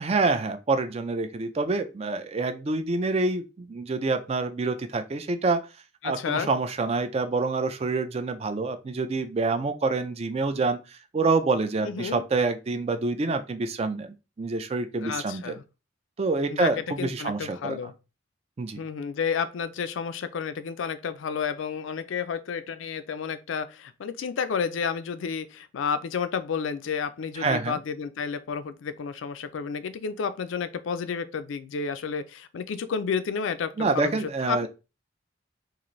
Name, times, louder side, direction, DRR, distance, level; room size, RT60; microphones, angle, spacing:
voice 1, 0.0-5.6 6.0-14.1 14.4-15.6 16.2-17.8 18.6-18.8 27.4-27.8 33.8-34.7, right 3 dB, 30° right, 0.4 m, -27 dB
voice 2, 6.0-6.5 11.8-12.2 15.0-15.6 16.5-16.7 17.0-17.9 18.7-34.2 34.5-34.7, left 6 dB, 80° left, 0.4 m, -31 dB
3.8 x 2.5 x 3.1 m
head